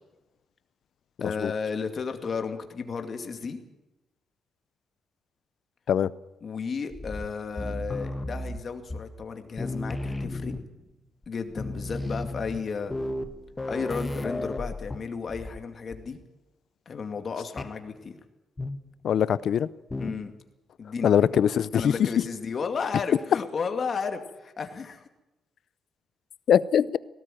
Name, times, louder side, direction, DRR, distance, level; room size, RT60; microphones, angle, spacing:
voice 1, 1.2-3.6 6.4-10.5 11.3-12.9 13.7-16.2 16.9-18.2 20.0-20.3 20.8-21.3 21.7-25.1, left 5 dB, 40° left, 2.3 m, -33 dB
sound 1, 6.9-9.3 9.6-10.9 11.2-11.3 11.5-15.6 15.9-16.2 17.6-17.8 18.6-19.0 19.9-20.3, left 1 dB, 15° left, 1.2 m, -34 dB
voice 2, 19.0-19.7 21.0-21.9 26.5-27.0, left 9 dB, 60° left, 0.7 m, -22 dB
18.5 x 17.5 x 9.2 m
cardioid pair, 150°, 0 cm